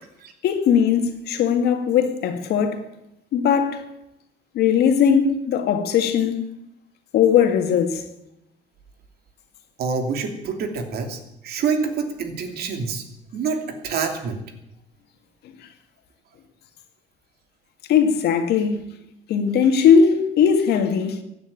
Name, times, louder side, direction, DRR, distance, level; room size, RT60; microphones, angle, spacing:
voice 1, 0.4-2.9 3.3-3.8 4.5-6.4 7.1-8.0 17.9-18.8 19.3-21.2, left 7 dB, 75° left, 2.2 m, -19 dB
voice 2, 9.8-13.0 13.3-14.4, right 5 dB, 65° right, 2.8 m, -27 dB
16.0 x 9.6 x 8.9 m
cardioid pair, 110°, 17 cm